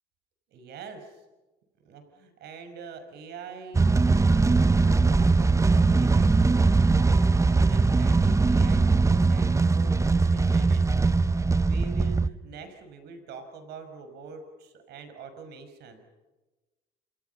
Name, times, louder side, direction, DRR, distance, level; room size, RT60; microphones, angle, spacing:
voice 1, 0.5-1.2 1.8-16.0, right 5 dB, 75° right, 8 dB, 5.9 m, -45 dB
sound 1, 3.7-12.3, right 3 dB, 15° right, 0.9 m, -21 dB
29.0 x 28.0 x 5.7 m, 1.1 s
cardioid pair, 110°, 17 cm